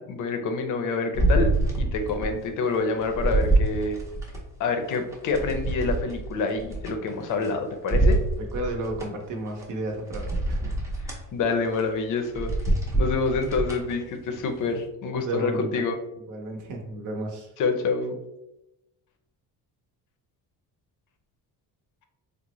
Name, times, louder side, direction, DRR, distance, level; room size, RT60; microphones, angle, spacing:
voice 1, 0.0-1.5 1.8-4.0 4.6-8.2 11.1-12.5 13.0-16.0 17.6-18.2, left 4 dB, 55° left, 6 dB, 0.5 m, -27 dB
sound 1, 1.1-2.4 2.7-4.4 4.9-7.5 7.9-9.1 9.6-9.7 10.1-11.2 11.7-11.9 12.2-13.9 14.4-14.5, right 2 dB, 10° right, 0.5 m, -25 dB
voice 2, 8.5-10.7 11.1-11.3 15.1-15.8 16.3-17.5, right 2 dB, 55° right, 2 dB, 0.7 m, -33 dB
3.7 x 2.0 x 2.9 m, 0.91 s
cardioid pair, 165°, 38 cm